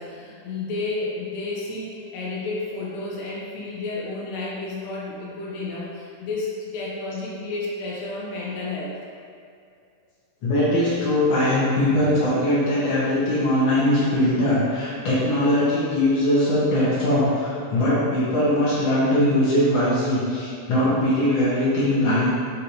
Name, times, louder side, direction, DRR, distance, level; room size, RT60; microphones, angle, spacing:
voice 1, 0.0-9.0, left 3 dB, 90° left, -5 dB, 2.2 m, -31 dB
voice 2, 10.4-22.3, left 1 dB, 65° left, -10 dB, 1.3 m, -21 dB
6.5 x 2.6 x 2.8 m, 2.4 s
omnidirectional pair, 3.7 m